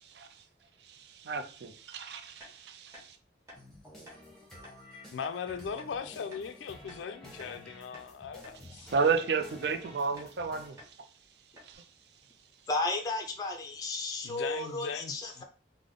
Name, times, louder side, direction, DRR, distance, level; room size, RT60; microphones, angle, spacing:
voice 1, 1.2-3.1 8.8-10.8 11.7-11.8, right 5 dB, 60° right, 0.4 m, -31 dB
sound 1, 2.4-2.5 2.9-3.1 3.5-3.6 4.1-4.2 4.6-4.8 5.2-5.4 5.8-5.9 6.3-6.5 6.9-7.6 7.9-8.1 8.4-8.6 9.0-9.2 9.6-9.8 10.2-10.3 10.8-10.9 11.2-11.3 11.6-11.8, left 1 dB, 15° right, 1.0 m, -51 dB
sound 2, 3.5-10.7, left 1 dB, 5° left, 0.8 m, -52 dB
voice 2, 5.1-8.9 14.2-15.4, left 6 dB, 85° left, 0.4 m, -39 dB
voice 3, 12.7-15.4, left 2 dB, 20° left, 0.4 m, -33 dB
3.3 x 2.0 x 3.7 m
head